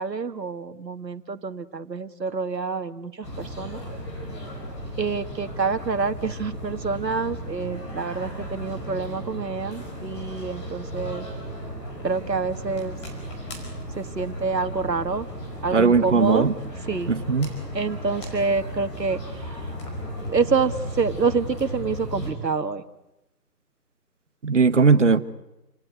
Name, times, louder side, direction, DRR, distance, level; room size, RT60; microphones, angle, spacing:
voice 1, 0.0-3.8 5.0-11.3 12.0-13.0 13.9-15.3 15.6-16.5 16.9-17.1 17.7-19.6 20.3-22.8, right 4 dB, 85° right, 9 dB, 2.0 m, -27 dB
sound 1, 3.2-22.3, equal, 15° left, 4.8 m, -35 dB
voice 2, 15.7-16.5 17.1-17.5 24.4-25.2, right 4 dB, 45° right, 13 dB, 1.3 m, -18 dB
29.5 x 18.5 x 9.3 m, 0.95 s
figure-of-eight pair, 165°, 49 cm